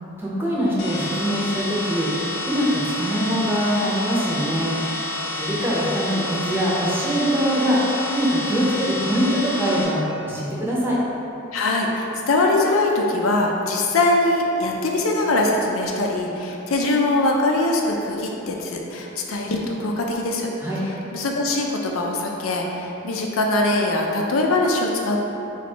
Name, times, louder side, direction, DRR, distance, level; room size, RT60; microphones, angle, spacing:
voice 1, 0.2-2.1 2.4-4.7 5.4-11.0 20.6-20.8, equal, 10° right, -7 dB, 0.7 m, -23 dB
sound 1, 0.8-9.8, left 2 dB, 55° left, 0.8 m, -29 dB
voice 2, 11.5-20.5 20.8-25.2, left 2 dB, 85° left, 0 dB, 0.5 m, -22 dB
4.1 x 2.4 x 4.2 m, 2.9 s
head